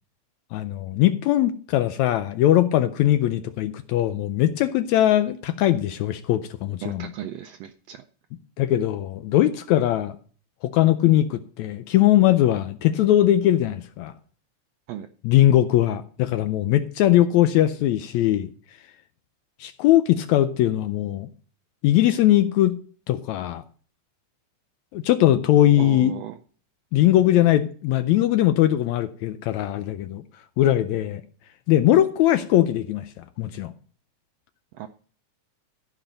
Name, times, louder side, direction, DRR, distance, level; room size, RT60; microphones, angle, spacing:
voice 1, 0.5-7.1 8.6-10.2 10.7-14.1 15.2-18.5 19.6-21.3 21.8-22.8 23.1-23.6 24.9-26.1 26.9-30.2 30.6-31.2 31.7-33.7, left 13 dB, 80° left, 10 dB, 1.8 m, -20 dB
voice 2, 6.8-8.0 14.9-15.1 25.7-26.4 34.8-34.9, right 11 dB, 85° right, 8 dB, 1.4 m, -35 dB
14.5 x 5.2 x 5.1 m, 0.43 s
omnidirectional pair, 3.5 m